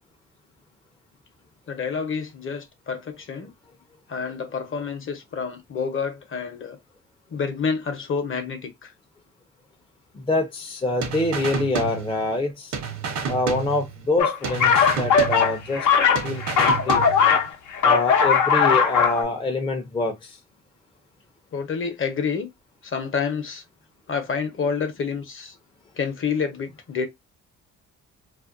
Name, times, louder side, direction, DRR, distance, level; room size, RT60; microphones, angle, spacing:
voice 1, 1.7-3.5 4.1-6.8 7.3-8.9 21.5-22.5 22.8-23.6 24.1-25.5 26.0-27.1, left 5 dB, 45° left, 0.8 m, -28 dB
voice 2, 10.1-12.8 13.3-15.9 16.2-17.0 17.8-20.4, left 2 dB, 15° left, 0.5 m, -26 dB
sound 1, 11.0-12.5 12.7-14.2 14.4-15.9 16.2-17.5, right 6 dB, 70° right, 0.8 m, -30 dB
sound 2, 14.2-17.5 17.7-19.2, left 6 dB, 75° left, 0.7 m, -19 dB
2.5 x 2.1 x 2.4 m
cardioid pair, 90°, 30 cm